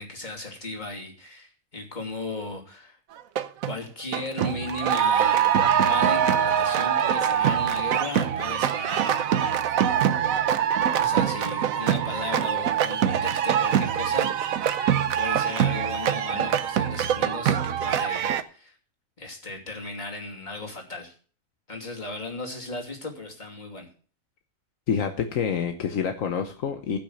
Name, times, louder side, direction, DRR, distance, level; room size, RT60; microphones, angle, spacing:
voice 1, 0.0-3.0 3.6-9.6 11.0-14.8 15.1-18.7 19.2-21.1 21.7-23.9, left 2 dB, 35° left, 0 dB, 2.9 m, -36 dB
sound 1, 3.2-3.7 4.1-18.4, right 9 dB, 80° right, 1.2 m, -24 dB
voice 2, 24.9-27.0, left 7 dB, 75° left, 6 dB, 1.3 m, -27 dB
15.0 x 6.2 x 6.5 m, 0.41 s
omnidirectional pair, 1.4 m